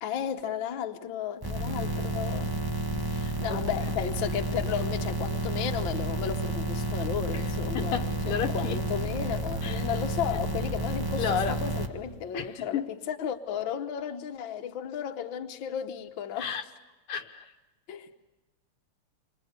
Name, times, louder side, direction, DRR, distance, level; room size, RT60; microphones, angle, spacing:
voice 1, 0.0-2.5 3.4-8.0 8.3-16.6 17.9-18.1, left 8 dB, 65° left, 1.9 m, -34 dB
sound 1, 1.4-11.9, right 2 dB, 10° right, 1.3 m, -31 dB
voice 2, 1.6-1.9 3.1-3.6 7.3-7.4 7.7-8.8 9.6-9.8 11.2-11.6 12.3-12.9 16.4-16.6 17.1-17.5, left 8 dB, 85° left, 2.2 m, -32 dB
28.5 x 25.0 x 8.2 m
omnidirectional pair, 2.4 m